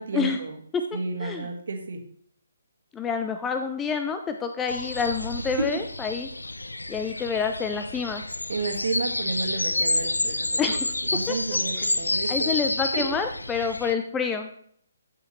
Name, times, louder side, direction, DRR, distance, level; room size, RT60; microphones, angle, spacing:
voice 1, 0.0-0.6 0.9-2.0 6.9-7.0 8.5-10.8 11.1-12.6 12.9-13.0, right 4 dB, 55° right, 4 dB, 1.7 m, -31 dB
voice 2, 2.9-6.3 6.9-8.2 10.6-10.9 11.3-11.4 11.8-11.9 12.3-14.5, left 6 dB, 10° left, 7 dB, 0.5 m, -28 dB
sound 1, 4.7-13.9, left 2 dB, 75° left, 0.3 m, -29 dB
14.0 x 5.6 x 3.1 m, 0.62 s
figure-of-eight pair, 135°, 0 cm